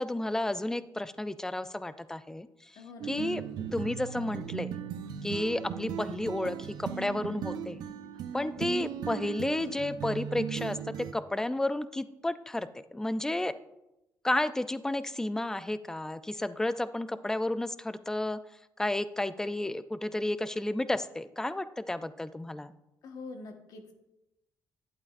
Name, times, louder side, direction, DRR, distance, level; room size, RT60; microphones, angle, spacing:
voice 1, 0.0-4.8 5.2-7.8 8.3-10.8 11.1-13.5 14.2-18.4 18.8-22.7, left 1 dB, 10° left, 13 dB, 0.3 m, -32 dB
voice 2, 2.8-3.1 5.4-5.6 8.4-8.6 23.0-23.9, left 3 dB, 70° left, 4 dB, 1.3 m, -45 dB
sound 1, 3.0-11.1, right 8 dB, 85° right, 0.6 m, -37 dB
11.0 x 8.4 x 2.5 m, 0.92 s
cardioid pair, 120°, 7 cm